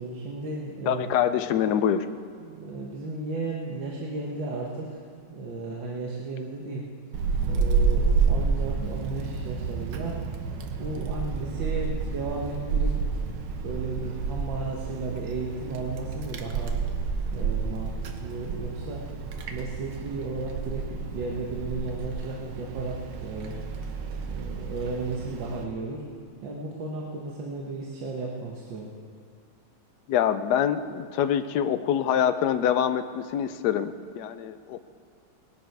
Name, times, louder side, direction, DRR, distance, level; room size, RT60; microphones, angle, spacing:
voice 1, 0.0-1.0 2.4-5.0 5.3-6.8 7.4-10.2 10.8-12.9 13.6-16.8 17.3-19.0 19.5-23.6 24.2-26.0 26.4-28.9, right 3 dB, 65° right, -2 dB, 1.9 m, -34 dB
voice 2, 0.9-2.1 30.1-34.8, left 9 dB, 75° left, 11 dB, 0.9 m, -25 dB
Wind, 7.1-25.6, right 5 dB, 85° right, 1.9 m, -30 dB
19.0 x 11.5 x 4.6 m, 2.2 s
omnidirectional pair, 2.3 m